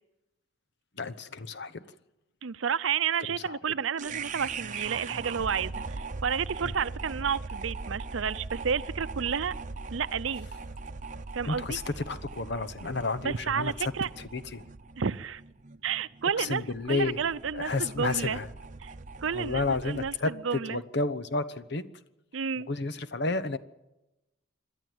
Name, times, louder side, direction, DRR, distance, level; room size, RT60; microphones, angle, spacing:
voice 1, 0.9-1.9 3.3-3.6 6.6-6.7 11.4-13.9 14.2-14.7 16.4-17.2 17.5-18.5 19.3-21.8 22.7-23.6, left 3 dB, 60° left, 12 dB, 1.0 m, -31 dB
voice 2, 2.4-9.5 9.9-10.5 11.3-11.8 13.2-14.1 15.0-15.4 15.8-18.4 18.8-18.9 19.2-20.1 20.4-20.8 22.3-22.7, right 6 dB, 85° right, 16 dB, 0.6 m, -31 dB
sound 1, 4.0-20.2, right 4 dB, 40° right, 0.8 m, -40 dB
27.0 x 12.0 x 7.9 m, 0.98 s
head